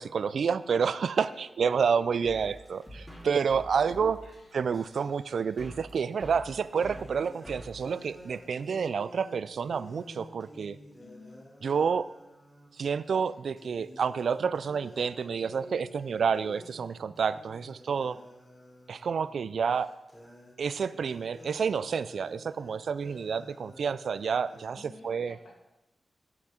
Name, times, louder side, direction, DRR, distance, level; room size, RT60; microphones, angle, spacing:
voice 1, 0.0-4.2 4.5-10.8 11.6-12.1 12.7-18.2 18.9-19.9 20.6-25.4, right 6 dB, 75° right, 16 dB, 0.3 m, -29 dB
voice 2, 1.3-2.3 4.2-4.5 11.0-11.4 23.0-23.3 24.7-25.6, left 2 dB, 70° left, 2 dB, 1.6 m, -52 dB
sound 1, 2.2-8.9, equal, ahead, 2.3 m, -48 dB
sound 2, 5.9-6.0 6.8-12.8 13.1-13.3 13.6-24.8, left 1 dB, 15° left, 3.0 m, -51 dB
10.5 x 6.0 x 4.3 m, 0.97 s
cardioid pair, 70°, 0 cm